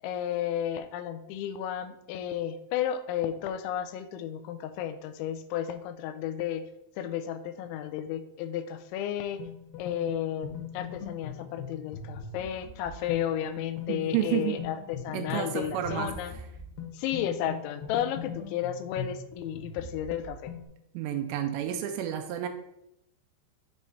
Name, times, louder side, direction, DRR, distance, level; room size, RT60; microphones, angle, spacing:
voice 1, 0.0-6.7 7.0-9.4 9.8-16.3 16.9-20.5, left 10 dB, 85° left, 10 dB, 2.9 m, -33 dB
sound 1, 9.4-20.7, left 7 dB, 70° left, 3.0 m, -41 dB
voice 2, 13.9-14.6 15.1-16.1 20.9-22.5, right 10 dB, 80° right, 7 dB, 2.6 m, -30 dB
7.7 x 3.1 x 5.4 m, 0.83 s
omnidirectional pair, 5.3 m